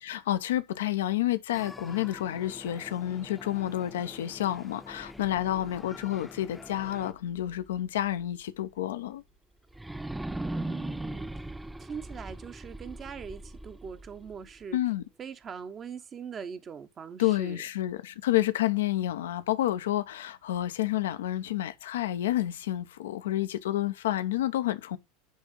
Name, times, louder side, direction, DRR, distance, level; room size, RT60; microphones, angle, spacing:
voice 1, 0.0-9.2 14.7-15.0 17.2-25.0, left 13 dB, 65° left, 0.8 m, -29 dB
sound 1, 1.5-7.1, left 3 dB, 15° left, 0.9 m, -47 dB
sound 2, 4.8-7.8 8.2-8.3 9.7-14.8, right 1 dB, 5° right, 0.4 m, -40 dB
voice 2, 10.3-11.5 11.8-14.8 15.2-17.6, right 6 dB, 30° right, 1.1 m, -42 dB
10.5 x 3.6 x 5.2 m
figure-of-eight pair, 80°, 0 cm